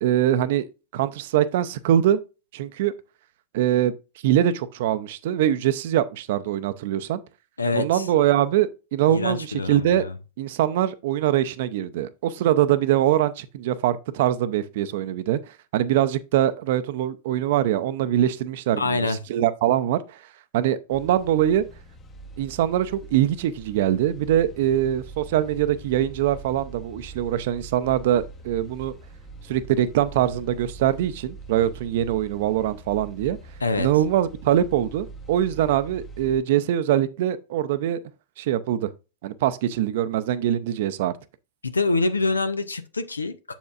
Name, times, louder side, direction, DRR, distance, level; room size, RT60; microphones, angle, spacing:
voice 1, 0.0-0.7 0.9-2.2 2.5-2.9 3.5-3.9 4.2-7.2 7.7-10.0 10.4-20.2 20.5-21.6 22.4-28.9 29.5-33.4 33.8-38.0 38.4-38.9 39.2-41.1, right 11 dB, 55° right, 0.6 m, -23 dB
voice 2, 7.6-8.0 9.1-10.1 18.8-19.2 33.6-33.9 41.6-43.5, left 3 dB, 80° left, 0.6 m, -25 dB
sound 1, 20.9-36.4, right 3 dB, 25° left, 1.0 m, -43 dB
7.2 x 7.1 x 2.4 m
figure-of-eight pair, 90°, 0 cm